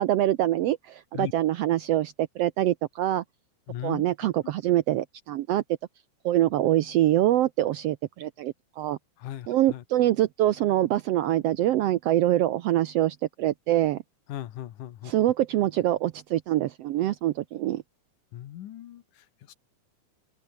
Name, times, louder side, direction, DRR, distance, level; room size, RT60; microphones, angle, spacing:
voice 1, 0.0-3.2 3.8-5.6 6.2-9.0 9.5-14.0 15.0-17.8, right 13 dB, 75° right, 1.5 m, -24 dB
voice 2, 3.7-4.0 9.2-9.8 14.3-15.1 18.3-19.5, left 12 dB, 85° left, 2.9 m, -38 dB
omnidirectional pair, 3.5 m